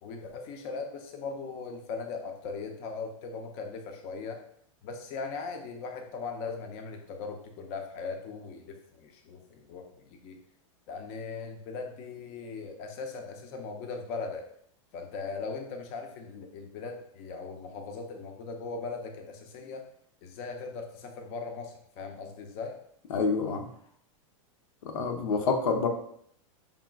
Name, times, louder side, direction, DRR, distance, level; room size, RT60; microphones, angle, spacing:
voice 1, 0.0-4.4 4.8-10.4 10.9-14.5 14.9-19.8 20.2-22.7, left 4 dB, 40° left, 4 dB, 0.6 m, -39 dB
voice 2, 23.1-23.7 24.8-25.9, left 4 dB, 75° left, 5 dB, 0.7 m, -27 dB
4.5 x 3.6 x 2.2 m, 0.67 s
supercardioid pair, 145°, 17 cm